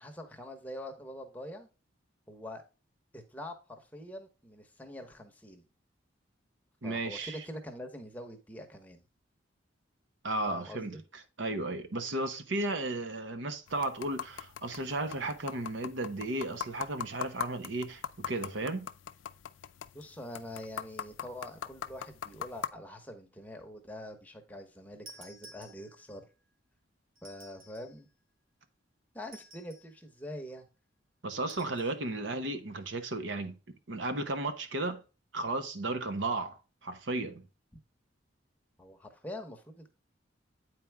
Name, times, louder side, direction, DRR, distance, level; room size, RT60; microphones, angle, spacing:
voice 1, 0.0-1.7 2.3-2.6 3.1-5.7 6.8-9.0 10.5-11.0 19.9-26.2 27.2-28.1 29.1-30.7 31.7-31.8 38.8-39.9, left 1 dB, 10° left, 1.0 m, -44 dB
voice 2, 6.8-7.4 10.2-11.0 11.4-18.9 31.2-33.5 33.9-35.0 35.3-36.5 36.8-37.4, right 2 dB, 70° right, 0.9 m, -34 dB
sound 1, 13.7-22.7, left 8 dB, 80° left, 0.4 m, -42 dB
sound 2, 25.1-26.2 27.2-28.0 29.2-30.0 31.5-31.9, right 1 dB, 90° right, 1.9 m, -54 dB
8.6 x 4.5 x 3.4 m
head